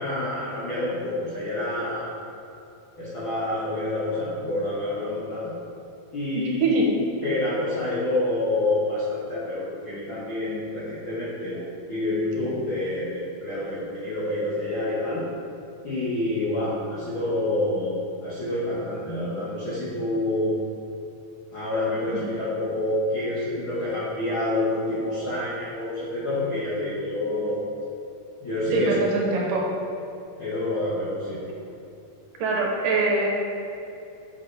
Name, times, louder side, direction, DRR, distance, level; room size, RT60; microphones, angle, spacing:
voice 1, 0.0-2.1 3.0-5.5 6.1-6.6 7.2-15.2 15.8-18.0 18.2-20.6 21.5-27.6 28.4-29.0 30.4-31.4, left 1 dB, 60° left, -9 dB, 1.3 m, -27 dB
voice 2, 6.6-6.9 28.7-29.7 32.4-33.3, right 2 dB, 75° right, -2 dB, 2.4 m, -22 dB
8.5 x 6.9 x 3.3 m, 2.8 s
omnidirectional pair, 4.1 m